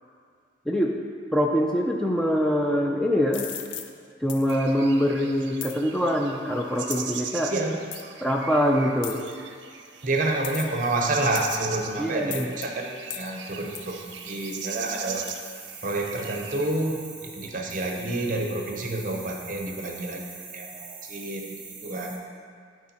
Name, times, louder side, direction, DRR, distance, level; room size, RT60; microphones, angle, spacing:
voice 1, 1.3-3.5 4.2-7.5 8.2-9.2 12.0-12.5, equal, 5° left, 0 dB, 0.3 m, -24 dB
sound 1, 3.3-3.9 4.3-4.5 5.6-5.8 6.9-7.2 7.9-8.0 9.0-9.3 10.4-10.8 11.4-11.8 12.3-12.7 13.1-13.3 13.8-13.9 14.5-14.7 15.3-15.4, left 9 dB, 85° left, 0.5 m, -36 dB
sound 2, 4.5-16.7, right 7 dB, 80° right, 0.5 m, -40 dB
voice 2, 7.5-8.1 10.0-15.3 15.8-20.3 20.5-22.2, right 2 dB, 45° right, 1 dB, 0.8 m, -29 dB
sound 3, 9.3-22.2, right 5 dB, 25° right, 1.2 m, -45 dB
11.5 x 4.6 x 2.9 m, 2.1 s
head